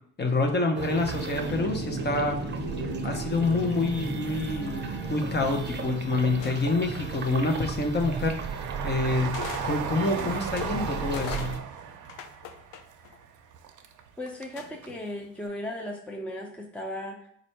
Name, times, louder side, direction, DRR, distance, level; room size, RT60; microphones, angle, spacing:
voice 1, 0.2-2.4 3.0-4.8 5.1-8.4 8.8-9.3 9.6-11.5, left 2 dB, 35° left, 3 dB, 0.8 m, -27 dB
sound 1, 0.8-11.6, right 3 dB, 35° right, 0.7 m, -34 dB
Train, 2.6-3.9 4.3-5.3 5.8-14.6 14.8-14.9, right 7 dB, 80° right, 0.6 m, -38 dB
sound 2, 6.4-6.9 8.0-8.1 9.3-9.7 10.0-13.2 14.5-15.0, left 8 dB, 90° left, 0.5 m, -40 dB
voice 2, 14.2-17.3, left 1 dB, 5° left, 1 dB, 0.6 m, -36 dB
4.3 x 2.6 x 4.4 m, 0.69 s
cardioid pair, 90°, 30 cm